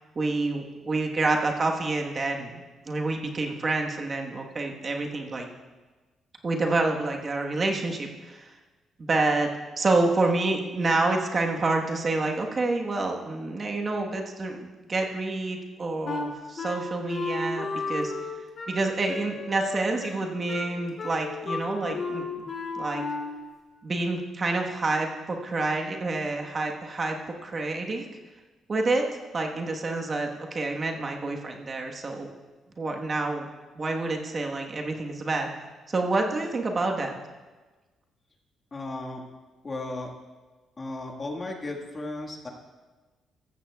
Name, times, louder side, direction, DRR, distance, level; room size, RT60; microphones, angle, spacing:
voice 1, 0.1-5.5 6.4-8.5 9.0-9.5 9.8-18.1 18.7-22.5 22.8-23.0 23.8-28.1 28.7-29.0 29.3-32.3 32.8-33.5 33.7-35.5 35.9-37.1, right 2 dB, 35° right, 1 dB, 1.3 m, -28 dB
Wind instrument woodwind instrument, 16.0-23.5, left 3 dB, 50° left, 2.4 m, -33 dB
voice 2, 38.7-39.2 39.6-40.1 40.8-42.5, left 2 dB, 30° left, 1 dB, 1.7 m, -35 dB
14.0 x 14.0 x 2.4 m, 1.3 s
cardioid pair, 90°, 0 cm